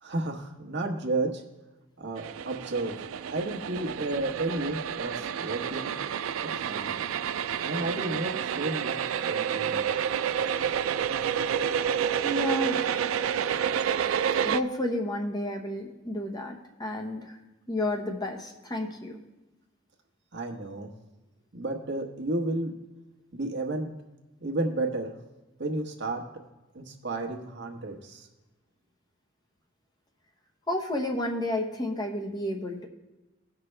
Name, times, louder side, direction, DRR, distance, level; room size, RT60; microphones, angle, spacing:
voice 1, 0.0-1.4 2.0-3.0 3.3-6.0 6.6-6.9 7.6-9.8 20.3-20.9 21.5-22.7 23.3-23.9 24.4-25.1 25.6-26.2 26.7-28.3, right 2 dB, 60° right, 1 dB, 1.2 m, -32 dB
sound 1, 2.2-14.6, right 8 dB, 85° right, 0.4 m, -29 dB
voice 2, 12.2-13.1 14.4-17.4 17.7-19.2 30.7-32.9, left 1 dB, 20° left, 1 dB, 1.1 m, -31 dB
16.0 x 5.9 x 3.3 m, 1.0 s
head